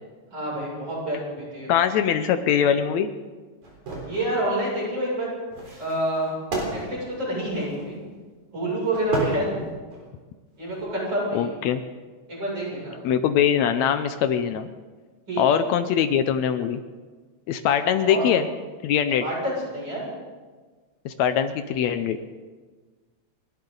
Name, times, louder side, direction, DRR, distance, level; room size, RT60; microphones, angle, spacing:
voice 1, 0.3-1.7 4.1-5.3 5.8-6.3 6.6-8.0 8.5-9.6 10.6-11.5 12.3-12.9 15.3-15.4 18.0-18.2 19.2-20.1, right 1 dB, 40° right, -6 dB, 7.5 m, -28 dB
voice 2, 1.7-3.1 11.3-11.8 13.0-14.7 15.4-16.8 17.5-18.5 18.8-19.2 21.1-22.2, left 8 dB, 75° left, 9 dB, 1.9 m, -22 dB
sound 1, 3.6-4.3 5.5-8.0 8.9-10.1 10.6-10.8, right 2 dB, 90° right, 5.3 m, -32 dB
30.0 x 12.0 x 3.9 m, 1.4 s
omnidirectional pair, 3.3 m